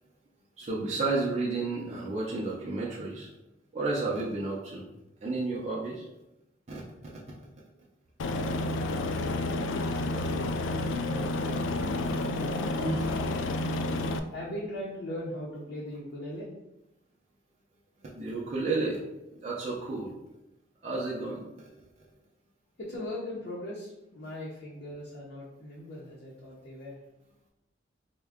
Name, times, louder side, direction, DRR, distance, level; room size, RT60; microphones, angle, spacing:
voice 1, 0.6-3.3 3.7-4.9 5.2-6.1 6.7-6.8 12.0-13.1 13.8-13.9 18.1-19.0 19.4-20.1 20.8-21.7, right 3 dB, 40° right, -5 dB, 0.5 m, -32 dB
Aircraft, 8.2-14.2, left 2 dB, 75° left, 0.3 m, -30 dB
voice 2, 14.3-16.5 22.8-27.0, left 1 dB, 60° left, -6 dB, 0.7 m, -39 dB
3.5 x 2.2 x 3.5 m, 0.91 s
head